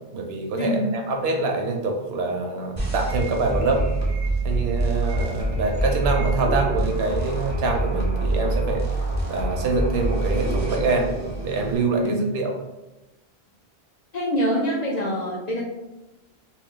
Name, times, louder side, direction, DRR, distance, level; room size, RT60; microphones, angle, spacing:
voice 1, 0.1-3.8 4.4-8.8 9.3-11.1 11.4-12.5, right 3 dB, 75° right, 2 dB, 0.8 m, -25 dB
sound 1, 2.8-11.8, right 2 dB, 20° right, 0.6 m, -25 dB
voice 2, 14.1-15.6, equal, 55° left, -3 dB, 0.5 m, -25 dB
2.3 x 2.2 x 3.5 m, 1.0 s
omnidirectional pair, 1.1 m